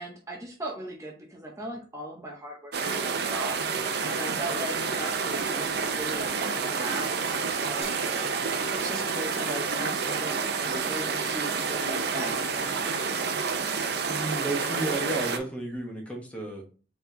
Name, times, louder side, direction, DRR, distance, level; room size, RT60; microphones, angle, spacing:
voice 1, 0.0-8.2 8.7-12.4, right 1 dB, 20° right, -1 dB, 0.7 m, -38 dB
sound 1, 2.7-15.4, right 5 dB, 65° right, 0.6 m, -29 dB
sound 2, 7.8-10.5, right 4 dB, 40° right, 0.9 m, -45 dB
voice 2, 14.0-16.6, right 2 dB, 10° left, 0 dB, 1.0 m, -32 dB
4.4 x 4.1 x 2.7 m, 0.37 s
head